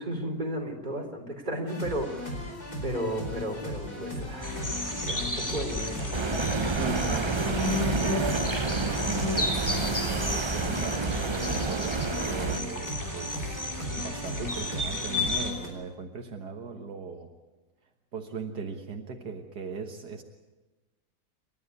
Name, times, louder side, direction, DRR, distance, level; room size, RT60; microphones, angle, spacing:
voice 1, 0.0-2.4 2.8-4.6 5.0-6.4, equal, 25° right, 1 dB, 3.7 m, -34 dB
sound 1, 1.7-15.7, left 1 dB, 65° left, 5.1 m, -37 dB
sound 2, 4.4-15.5, left 2 dB, 10° left, 2.7 m, -33 dB
sound 3, 6.1-12.6, right 4 dB, 50° right, 0.3 m, -30 dB
voice 2, 6.8-13.7 14.0-17.3 18.1-20.2, right 5 dB, 75° right, 3 dB, 1.9 m, -39 dB
28.5 x 13.0 x 9.5 m, 1.2 s
omnidirectional pair, 1.8 m